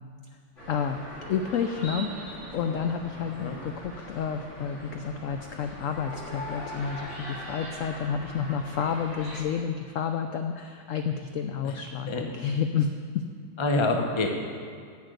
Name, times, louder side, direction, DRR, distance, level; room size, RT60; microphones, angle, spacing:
sound 1, 0.6-9.4, equal, 45° left, 2.8 m, -41 dB
voice 1, 0.7-1.0 1.3-2.1 2.5-13.2, left 7 dB, 70° left, 6 dB, 0.7 m, -30 dB
voice 2, 13.6-14.3, left 2 dB, 25° left, 3 dB, 0.6 m, -26 dB
10.0 x 5.9 x 8.0 m, 2.2 s
omnidirectional pair, 1.8 m